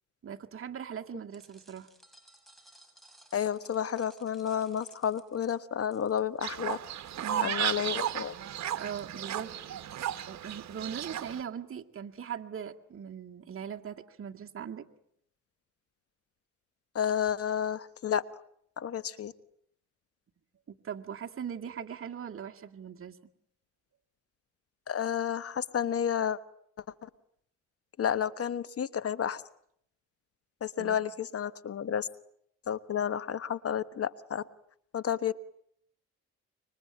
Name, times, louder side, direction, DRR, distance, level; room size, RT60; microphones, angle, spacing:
voice 1, 0.2-1.9 7.2-7.5 8.7-9.5 10.3-14.9 20.7-23.2 30.8-31.0, right 8 dB, 45° right, 4 dB, 2.1 m, -40 dB
sound 1, 1.3-7.3, right 1 dB, ahead, 6.6 m, -60 dB
voice 2, 3.3-6.8 7.4-8.3 16.9-18.2 18.8-19.3 24.9-26.4 27.0-27.1 28.0-29.4 30.6-32.1 32.7-34.4 34.9-35.3, left 8 dB, 50° left, 15 dB, 1.2 m, -31 dB
Fowl, 6.4-11.4, right 10 dB, 65° right, 1.5 m, -34 dB
26.0 x 24.0 x 9.0 m, 0.71 s
cardioid pair, 90°, 30 cm